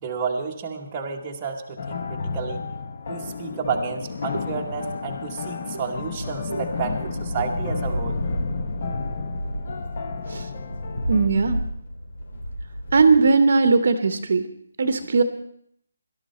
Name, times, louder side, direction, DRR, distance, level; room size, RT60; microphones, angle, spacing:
voice 1, 0.0-2.6 3.1-8.2, right 5 dB, 15° right, -1 dB, 1.0 m, -31 dB
sound 1, 1.8-11.3, left 5 dB, 30° left, 0.8 m, -32 dB
sound 2, 5.9-13.2, equal, 55° left, 4.8 m, -32 dB
voice 2, 11.1-11.6 12.9-14.5 14.8-15.2, right 4 dB, 45° right, 10 dB, 0.9 m, -18 dB
18.0 x 12.0 x 4.3 m, 0.69 s
hypercardioid pair, 175°, 0 cm